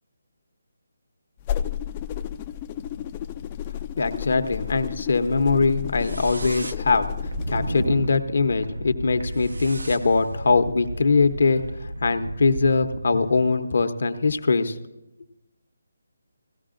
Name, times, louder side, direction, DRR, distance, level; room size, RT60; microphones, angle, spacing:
sound 1, 1.4-7.9, left 10 dB, 25° left, 0.3 m, -32 dB
voice 1, 4.0-7.1 7.5-14.8, left 4 dB, 65° left, 8 dB, 0.8 m, -22 dB
sound 2, 6.0-13.5, right 1 dB, 80° right, 0.6 m, -33 dB
16.5 x 13.5 x 2.5 m, 0.96 s
figure-of-eight pair, 155°, 0 cm